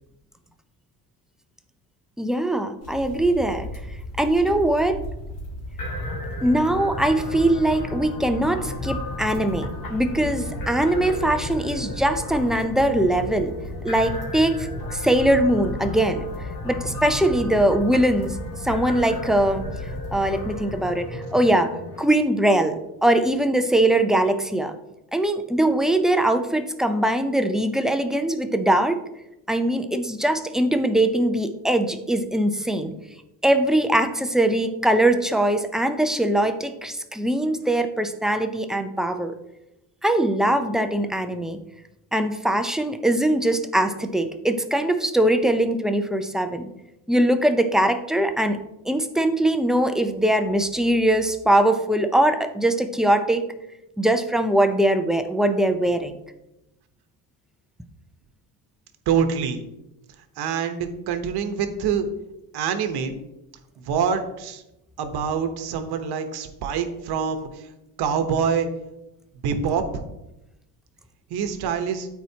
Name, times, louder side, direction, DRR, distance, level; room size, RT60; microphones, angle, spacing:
voice 1, 2.2-3.7 4.2-5.0 6.4-13.5 13.8-16.3 16.6-19.6 20.1-24.8 25.1-29.0 29.5-32.9 33.4-39.3 40.0-41.6 42.1-46.7 47.1-48.6 48.9-53.4 54.0-56.1, right 1 dB, ahead, 6 dB, 0.4 m, -21 dB
sound 1, 2.8-21.1, equal, 70° left, 2.8 m, -36 dB
sound 2, 5.8-22.0, left 2 dB, 50° left, 2.0 m, -35 dB
voice 2, 59.1-59.6 60.4-62.1 62.5-63.2 63.8-64.6 65.0-67.7 68.0-68.7 69.4-69.8 71.3-72.1, right 7 dB, 65° right, 7 dB, 1.0 m, -25 dB
13.0 x 4.4 x 2.8 m, 0.91 s
cardioid pair, 130°, 41 cm